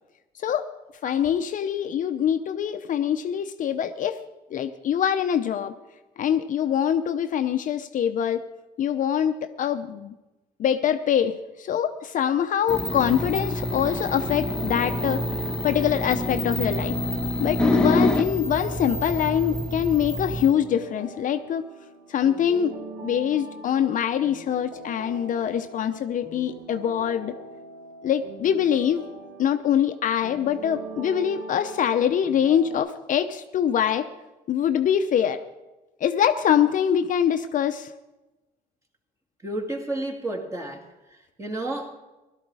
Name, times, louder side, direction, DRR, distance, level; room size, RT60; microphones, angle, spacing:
voice 1, 1.0-4.2 4.5-5.7 6.2-8.5 8.8-10.1 10.6-15.2 15.6-17.0 17.4-21.7 22.1-22.7 23.0-27.3 28.0-29.0 29.4-34.1 34.5-35.4 36.0-37.9, left 9 dB, 50° left, 8 dB, 0.7 m, -24 dB
sound 1, 12.7-20.5, left 1 dB, 5° left, 1.1 m, -27 dB
sound 2, 13.2-32.8, right 2 dB, 75° right, 2.1 m, -41 dB
voice 2, 39.4-40.9 41.4-41.9, right 1 dB, 20° right, 1 dB, 2.3 m, -31 dB
16.5 x 12.5 x 4.8 m, 1.1 s
cardioid pair, 110°, 17 cm